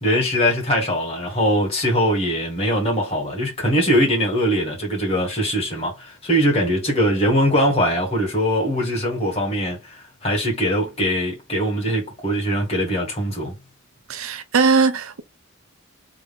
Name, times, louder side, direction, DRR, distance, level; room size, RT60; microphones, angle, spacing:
voice 1, 0.0-10.0 10.2-13.5, equal, 30° left, 2.1 m, -21 dB
voice 2, 14.1-15.2, right 4 dB, 75° right, 0.6 m, -19 dB
3.5 x 2.7 x 3.5 m
head